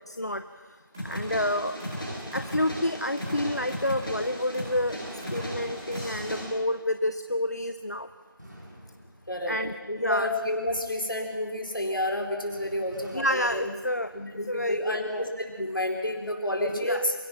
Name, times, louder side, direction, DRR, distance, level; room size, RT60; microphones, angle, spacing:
voice 1, 0.1-0.4 1.0-1.8 2.3-5.0 5.3-8.1 9.5-10.3 13.1-14.1 14.5-15.4 16.8-17.0, left 1 dB, 50° left, 10 dB, 0.7 m, -29 dB
sound 1, 0.9-6.4, equal, 5° right, 4.3 m, -36 dB
sound 2, 2.5-2.9 3.2-3.8 5.0-6.7 8.4-10.2 12.5-14.6, equal, 55° right, 5.4 m, -48 dB
voice 2, 9.3-9.6 9.9-13.7 14.1-17.1, left 1 dB, 65° left, 2 dB, 4.8 m, -30 dB
28.5 x 16.5 x 5.9 m, 1.5 s
figure-of-eight pair, 175°, 12 cm